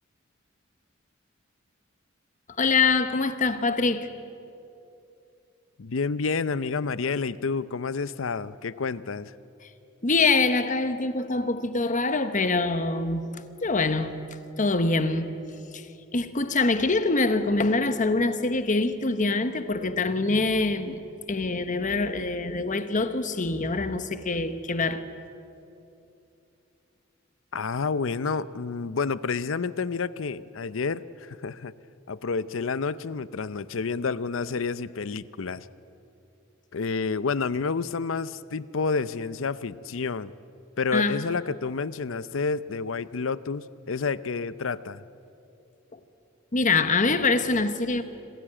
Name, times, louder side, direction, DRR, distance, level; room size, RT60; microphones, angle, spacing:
voice 1, 2.6-4.1 10.0-13.3 13.6-14.2 14.6-15.3 15.7-15.9 16.1-21.0 21.3-25.1 40.9-41.2 46.5-48.0, left 3 dB, 40° left, 1.0 m, -24 dB
voice 2, 5.8-9.3 27.5-31.7 32.1-35.7 36.7-40.3 40.8-45.0, left 4 dB, 70° left, 0.6 m, -29 dB
26.0 x 15.5 x 8.8 m
head